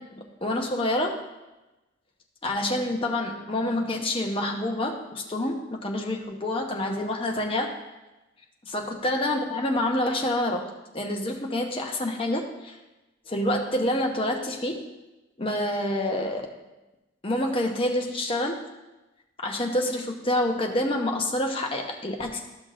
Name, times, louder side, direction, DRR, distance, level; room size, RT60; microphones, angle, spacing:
voice 1, 0.1-1.2 2.4-7.7 8.7-10.7 10.9-12.7 13.3-14.8 15.4-16.5 17.2-18.6 19.4-22.4, left 1 dB, 25° left, 1 dB, 0.9 m, -27 dB
13.5 x 6.0 x 2.5 m, 1.0 s
head